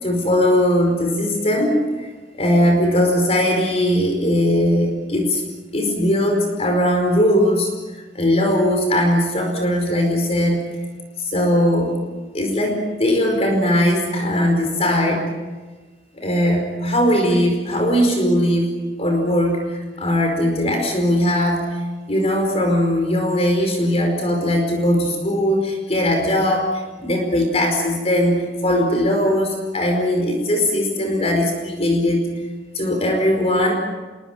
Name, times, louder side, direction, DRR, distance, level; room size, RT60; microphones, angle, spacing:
voice 1, 0.0-2.1 2.3-5.4 5.7-7.7 8.1-10.6 11.2-12.0 12.3-15.3 16.1-32.3 32.7-33.8, left 1 dB, 35° left, 3 dB, 4.8 m, -19 dB
28.0 x 22.5 x 7.5 m, 1.3 s
head